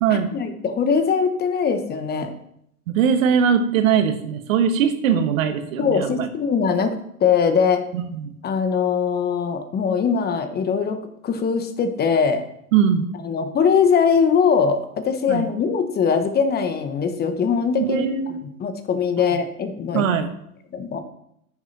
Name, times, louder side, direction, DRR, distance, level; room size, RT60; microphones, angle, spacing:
voice 1, 0.1-2.3 5.8-7.8 8.4-11.0 11.2-12.4 13.2-18.0 18.6-20.0 20.7-21.0, left 6 dB, 20° left, 8 dB, 1.0 m, -21 dB
voice 2, 2.9-6.3 7.9-8.4 12.7-13.1 15.3-15.5 17.8-18.4 19.3-19.4 19.9-20.3, right 7 dB, 60° right, 8 dB, 1.3 m, -21 dB
9.9 x 6.7 x 4.2 m, 0.75 s
hypercardioid pair, 105°, 45 cm